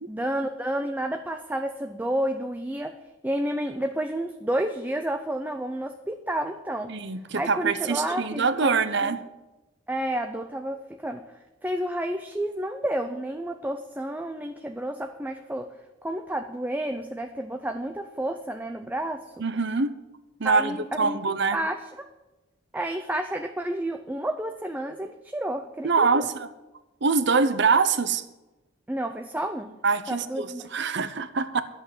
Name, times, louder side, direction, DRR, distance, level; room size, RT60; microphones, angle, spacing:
voice 1, 0.1-2.9 3.2-6.9 7.4-9.2 9.9-11.2 11.6-15.7 16.0-19.2 20.4-21.2 21.5-22.1 22.7-26.3 28.9-29.7 30.1-30.7, right 1 dB, 10° right, 6 dB, 0.5 m, -30 dB
voice 2, 6.9-9.2 19.4-19.9 20.4-21.6 25.8-26.5 27.0-28.2 29.8-31.6, right 4 dB, 55° right, 12 dB, 0.8 m, -24 dB
11.0 x 8.0 x 8.2 m, 1.1 s
head